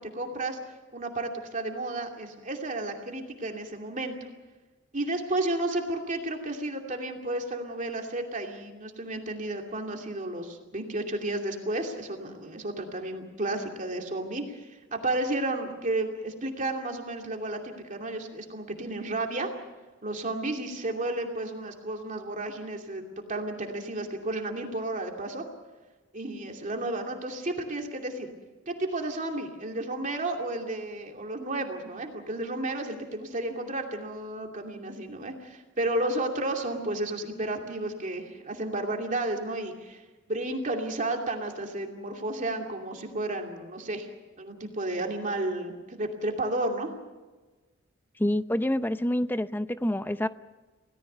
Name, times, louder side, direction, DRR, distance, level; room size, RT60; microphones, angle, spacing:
voice 1, 0.1-0.6 0.9-4.1 4.9-14.6 14.9-19.5 20.0-25.5 26.1-28.3 28.7-40.0 40.3-44.1 44.4-46.9, right 2 dB, 40° right, 2 dB, 2.6 m, -32 dB
voice 2, 48.2-50.3, left 1 dB, 10° left, 12 dB, 0.6 m, -27 dB
27.0 x 18.0 x 6.9 m, 1.2 s
head